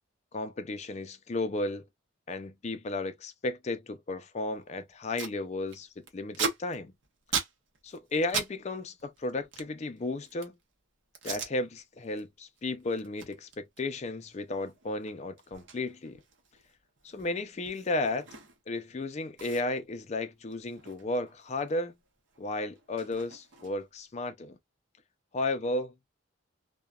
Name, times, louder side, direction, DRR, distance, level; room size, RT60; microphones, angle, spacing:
voice 1, 0.3-1.8 2.3-6.9 7.8-10.5 11.2-16.2 17.0-18.3 18.7-21.9 22.4-24.6 25.3-25.9, left 2 dB, 35° left, 0.4 m, -34 dB
Packing tape duct tape, 4.6-4.7 4.9-5.4 5.7-8.5 8.8-10.6 11.1-11.5 12.0-12.2 12.6-18.8 19.0-19.1 19.4-21.8 22.0-24.0, right 6 dB, 60° right, 0.8 m, -39 dB
2.8 x 2.2 x 2.3 m
head